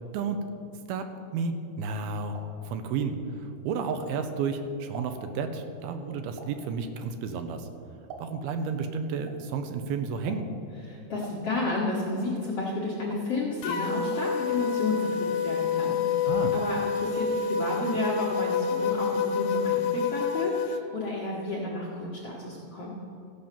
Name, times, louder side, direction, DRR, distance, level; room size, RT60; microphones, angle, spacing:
voice 1, 0.1-0.5 0.9-2.4 2.7-7.7 8.2-10.5 16.3-16.5, right 5 dB, 80° right, 8 dB, 2.5 m, -32 dB
sound 1, 2.3-4.3 4.7-8.6 8.9-16.2 16.5-17.1 17.6-19.3 19.6-20.7 20.9-21.0 21.3-21.4, right 3 dB, 60° right, 2.3 m, -49 dB
voice 2, 10.9-22.9, left 2 dB, 65° left, -5 dB, 1.5 m, -32 dB
sound 2, 13.6-20.8, left 6 dB, 85° left, 2.5 m, -28 dB
14.5 x 5.5 x 7.4 m, 2.8 s
omnidirectional pair, 4.5 m